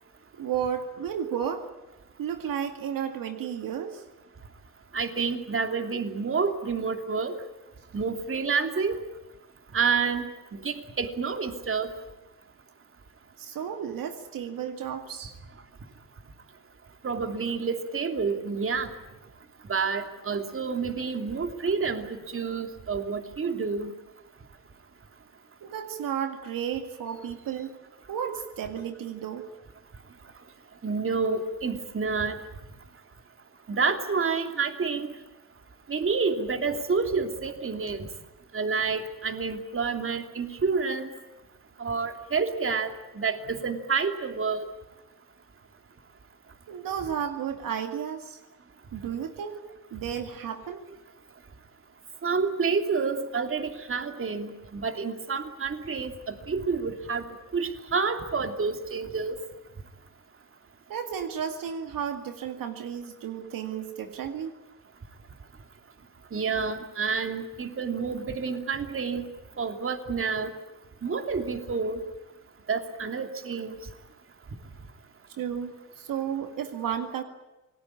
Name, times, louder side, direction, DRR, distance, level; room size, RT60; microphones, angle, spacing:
voice 1, 0.3-1.7 2.2-4.0 13.4-15.4 25.6-27.8 28.1-29.5 46.7-48.4 48.9-50.9 60.9-64.6 75.3-77.2, right 8 dB, 70° right, 7 dB, 2.2 m, -33 dB
voice 2, 4.9-7.3 7.9-9.0 9.7-10.2 10.6-11.9 17.0-18.9 19.7-23.9 30.8-32.4 33.7-35.1 35.9-38.1 38.5-41.1 41.8-44.7 52.2-57.2 57.5-59.4 66.3-69.2 69.6-70.5 71.0-72.0 72.7-73.7, right 5 dB, 40° right, 7 dB, 2.9 m, -29 dB
28.0 x 19.5 x 8.6 m, 1.0 s
cardioid pair, 90°, 34 cm